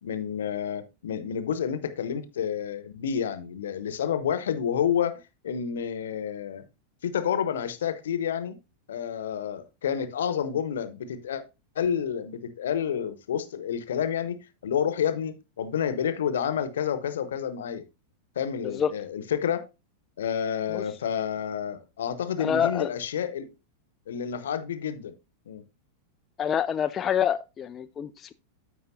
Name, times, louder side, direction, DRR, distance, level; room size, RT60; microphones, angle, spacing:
voice 1, 0.0-6.6 7.0-8.6 8.9-11.4 11.7-17.8 18.4-19.7 20.2-23.5 24.1-25.1 25.5-25.6, left 8 dB, 60° left, 0.9 m, -29 dB
voice 2, 22.4-22.9 26.4-28.3, left 8 dB, 25° left, 0.3 m, -27 dB
13.5 x 4.7 x 2.6 m
figure-of-eight pair, 90°, 0 cm